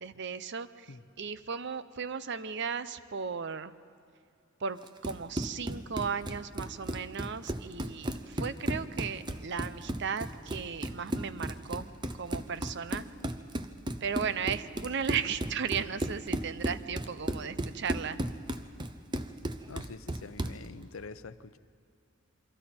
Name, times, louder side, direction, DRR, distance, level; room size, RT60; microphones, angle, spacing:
voice 1, 0.0-3.7 4.6-11.9 12.2-13.0 14.0-18.2, right 6 dB, 60° right, 14 dB, 0.7 m, -36 dB
Run, 4.8-20.7, right 1 dB, 20° right, 0.7 m, -36 dB
voice 2, 19.7-21.6, left 4 dB, 80° left, 13 dB, 0.7 m, -45 dB
28.0 x 24.0 x 4.4 m, 2.4 s
head